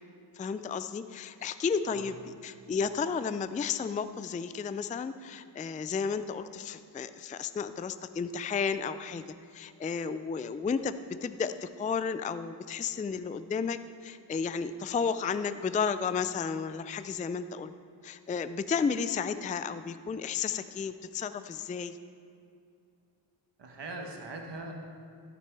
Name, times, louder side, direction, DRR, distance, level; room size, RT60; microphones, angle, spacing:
voice 1, 0.3-9.2 9.5-17.7 18.0-22.0, left 6 dB, 20° left, 12 dB, 0.3 m, -33 dB
voice 2, 23.6-24.7, right 2 dB, 75° right, 2 dB, 1.4 m, -41 dB
14.5 x 6.1 x 4.7 m, 2.5 s
cardioid pair, 65°, 43 cm